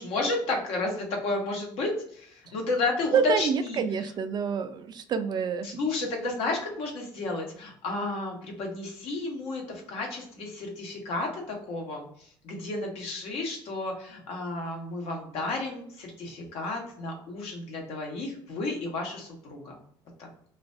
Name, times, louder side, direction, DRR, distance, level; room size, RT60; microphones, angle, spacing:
voice 1, 0.0-3.8 5.6-12.1 12.4-19.8 20.2-20.3, left 2 dB, 70° left, 0 dB, 1.0 m, -32 dB
voice 2, 3.1-5.8, right 6 dB, 45° right, 8 dB, 0.4 m, -27 dB
2.4 x 2.2 x 2.5 m, 0.63 s
supercardioid pair, 90°, 10 cm